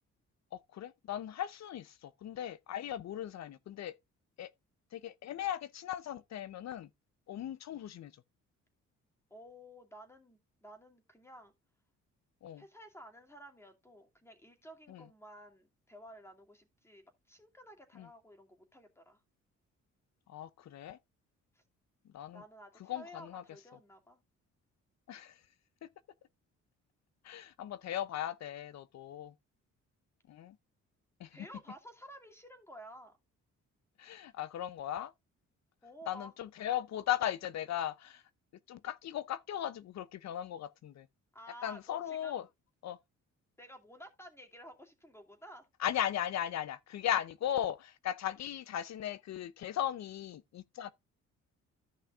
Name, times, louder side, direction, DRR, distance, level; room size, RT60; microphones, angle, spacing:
voice 1, 0.5-4.0 4.4-4.5 4.9-6.9 7.3-8.1 12.4-12.6 14.9-15.0 18.0-18.1 20.3-21.0 22.1-22.4 22.8-23.4 25.1-25.4 27.2-29.3 30.3-30.6 31.2-31.4 34.0-35.1 36.1-38.2 38.7-41.1 41.6-42.5 42.8-43.0 45.8-50.9, left 11 dB, 60° left, 0.7 m, -37 dB
voice 2, 9.3-11.5 12.6-19.2 21.5-21.6 22.3-24.2 31.3-33.2 35.8-36.3 41.3-42.4 43.6-45.7, equal, 10° left, 2.5 m, -53 dB
14.0 x 5.7 x 2.4 m
cardioid pair, 90°, 30 cm